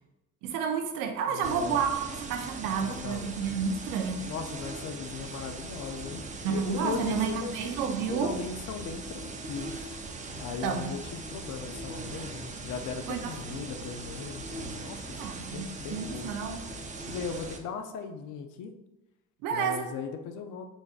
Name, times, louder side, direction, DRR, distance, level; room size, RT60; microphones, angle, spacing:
voice 1, 0.4-4.3 6.4-8.3 10.6-11.0 13.1-13.3 15.2-16.6 19.4-19.9, right 6 dB, 80° right, 5 dB, 0.6 m, -30 dB
voice 2, 1.3-1.8 2.8-3.5 4.2-7.6 8.1-9.9 10.4-15.2 15.5-16.3 17.1-18.7 19.5-20.7, left 6 dB, 70° left, 6 dB, 0.6 m, -38 dB
sound 1, 1.4-17.6, right 3 dB, 25° right, 0.5 m, -40 dB
4.1 x 3.5 x 2.4 m, 0.97 s
supercardioid pair, 80°, 32 cm